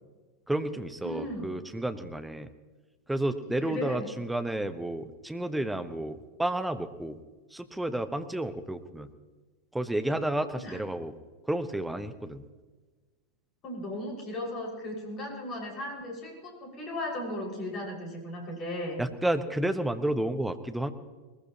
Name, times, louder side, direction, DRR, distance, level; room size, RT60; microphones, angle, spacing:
voice 1, 0.5-2.5 3.1-7.2 7.5-9.1 9.7-11.1 11.5-12.4 19.0-20.9, right 1 dB, 5° right, 9 dB, 1.1 m, -31 dB
voice 2, 1.0-1.6 3.6-4.1 10.5-10.8 13.6-19.0, left 1 dB, 30° left, -1 dB, 5.7 m, -36 dB
21.0 x 21.0 x 3.0 m, 1.3 s
figure-of-eight pair, 90°, 0 cm